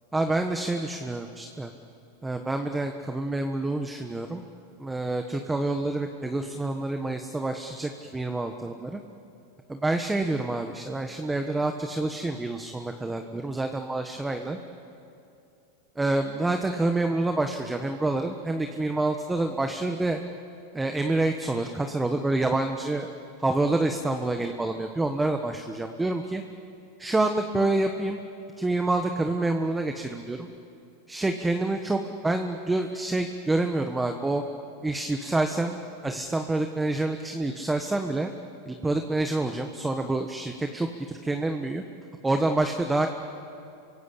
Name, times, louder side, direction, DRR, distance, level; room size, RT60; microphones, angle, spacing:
voice 1, 0.1-1.7 2.2-4.4 4.8-9.0 9.7-14.6 16.0-20.2 20.7-23.1 23.4-26.4 27.0-28.2 28.6-30.5 31.1-34.4 34.8-38.3 38.6-40.9 41.2-41.8 42.2-43.1, right 2 dB, 10° right, 5 dB, 1.3 m, -27 dB
27.0 x 24.0 x 8.6 m, 2.7 s
supercardioid pair, 130°, 0 cm